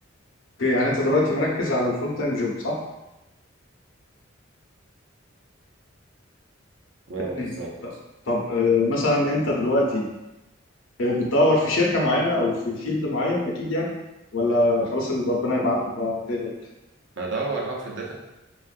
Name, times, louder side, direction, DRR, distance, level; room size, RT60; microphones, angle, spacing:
voice 1, 0.6-2.8 7.3-7.5 8.3-10.0 11.0-13.9 14.3-16.5, left 2 dB, 80° left, -2 dB, 0.7 m, -23 dB
voice 2, 7.1-8.0 17.2-18.1, right 3 dB, 65° right, -2 dB, 0.6 m, -31 dB
3.5 x 2.4 x 2.4 m, 0.98 s
head